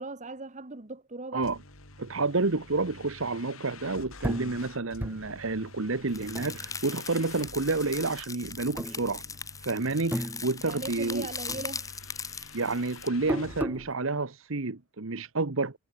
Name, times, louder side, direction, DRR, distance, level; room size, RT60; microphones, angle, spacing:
voice 1, 0.0-1.5 10.6-11.9, right 3 dB, 35° right, 1.5 m, -39 dB
sound 1, 1.4-13.7, left 3 dB, 75° left, 7.9 m, -49 dB
voice 2, 2.0-9.2 9.6-11.3 12.5-15.8, right 3 dB, 65° right, 1.2 m, -29 dB
sound 2, 4.2-7.1 7.4-8.2 8.7-9.6 9.9-11.2 11.5-13.9, equal, 10° right, 1.0 m, -36 dB
sound 3, 6.1-13.1, left 5 dB, 15° left, 5.0 m, -40 dB
head